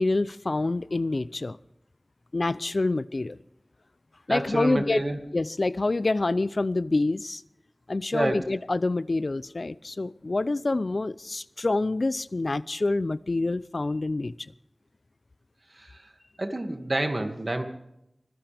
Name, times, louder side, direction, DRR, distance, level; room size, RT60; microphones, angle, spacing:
voice 1, 0.0-1.6 2.3-3.4 4.3-5.0 5.3-7.4 7.9-14.5, left 2 dB, 75° left, 17 dB, 0.5 m, -27 dB
voice 2, 4.3-5.2 8.1-8.4 15.7-16.1 16.4-17.6, right 1 dB, 55° right, 5 dB, 2.2 m, -28 dB
24.5 x 16.0 x 3.5 m, 0.83 s
wide cardioid pair, 50°, 0 cm